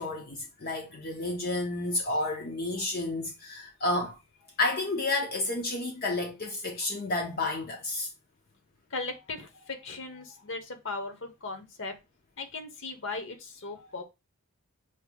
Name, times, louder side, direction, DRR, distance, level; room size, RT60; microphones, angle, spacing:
voice 1, 0.0-4.2 4.6-8.1, left 2 dB, 45° left, 0.7 m, -31 dB
voice 2, 8.9-12.0 12.4-14.0, left 3 dB, 60° left, 1.1 m, -38 dB
6.4 x 2.9 x 2.3 m
head